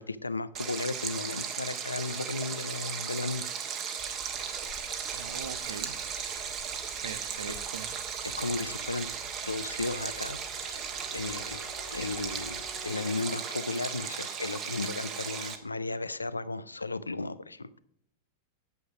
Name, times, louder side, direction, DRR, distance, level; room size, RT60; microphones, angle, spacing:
voice 1, 0.0-3.5 5.1-5.2 7.5-7.6 8.2-9.1 9.4-10.8 11.1-11.6 11.9-17.7, left 3 dB, 80° left, 16 dB, 0.5 m, -35 dB
Stream, 0.5-15.6, right 7 dB, 35° right, 1.4 m, -36 dB
Hammer, 4.0-12.9, left 5 dB, 45° left, 1.8 m, -53 dB
voice 2, 5.1-5.9 7.0-7.9, right 6 dB, 70° right, 13 dB, 0.7 m, -41 dB
Wind instrument woodwind instrument, 10.2-15.0, left 5 dB, 25° left, 1.6 m, -52 dB
9.2 x 8.0 x 4.8 m, 0.68 s
figure-of-eight pair, 90°, 0 cm